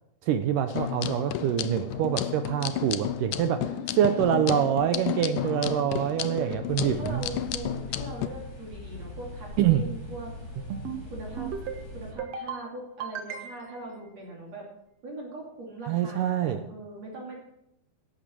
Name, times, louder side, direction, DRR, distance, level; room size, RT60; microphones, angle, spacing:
voice 1, 0.2-3.7 4.0-7.2 9.6-9.8 15.9-16.6, right 10 dB, 80° right, 9 dB, 1.9 m, -25 dB
sound 1, 0.7-8.3, left 12 dB, 85° left, 1.8 m, -32 dB
voice 2, 1.3-1.8 3.6-4.9 5.4-5.8 6.3-6.6 6.9-10.4 11.1-11.5 11.9-14.7 15.0-17.4, right 2 dB, 45° right, -2 dB, 3.6 m, -41 dB
sound 2, 6.7-12.1, left 2 dB, 25° left, 3.0 m, -41 dB
sound 3, 10.6-11.0 11.4-11.8 12.2-12.6 13.0-13.8, right 7 dB, 65° right, 1.8 m, -35 dB
14.5 x 11.5 x 4.5 m, 0.79 s
omnidirectional pair, 4.5 m